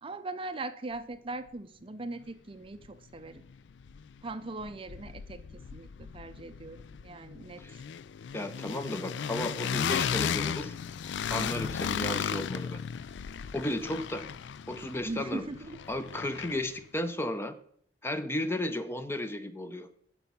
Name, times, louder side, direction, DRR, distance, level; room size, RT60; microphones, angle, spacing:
voice 1, 0.0-3.4 4.2-7.8 11.3-11.7 15.1-15.8, right 2 dB, 30° right, 11 dB, 0.5 m, -40 dB
sound 1, 2.8-2.9 3.2-4.3 4.6-16.8, left 7 dB, 85° left, 0.4 m, -35 dB
voice 2, 8.3-10.8 11.3-12.8 13.5-14.2 14.7-15.5 15.9-17.5 18.0-19.9, left 1 dB, 15° left, 10 dB, 0.6 m, -34 dB
10.0 x 6.1 x 5.4 m, 0.63 s
head